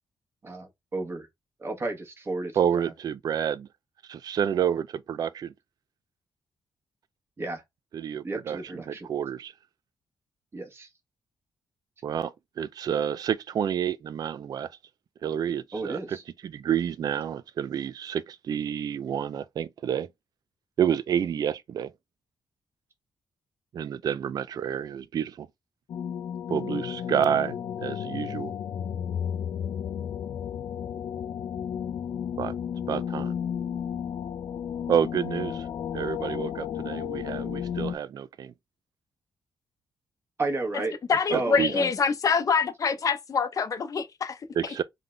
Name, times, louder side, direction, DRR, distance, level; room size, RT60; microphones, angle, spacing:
voice 1, 0.4-1.3 1.6-2.9 7.4-7.6 8.2-9.1 10.5-10.9 15.7-16.2 40.4-40.9 41.3-41.9, right 2 dB, 30° right, 1.3 m, -32 dB
voice 2, 2.5-3.7 4.1-5.5 7.9-9.5 12.0-14.7 15.2-16.2 16.4-20.1 20.8-21.9 23.7-25.5 26.5-28.5 32.4-32.6 32.9-33.4 34.9-35.7 35.9-38.5 41.3-41.7 44.6-44.8, right 8 dB, 50° right, 0.4 m, -29 dB
sound 1, 25.9-38.0, left 8 dB, 65° left, 0.5 m, -33 dB
voice 3, 41.1-44.4 44.6-44.7, left 5 dB, 40° left, 0.8 m, -25 dB
3.8 x 3.7 x 3.3 m
wide cardioid pair, 165°, 9 cm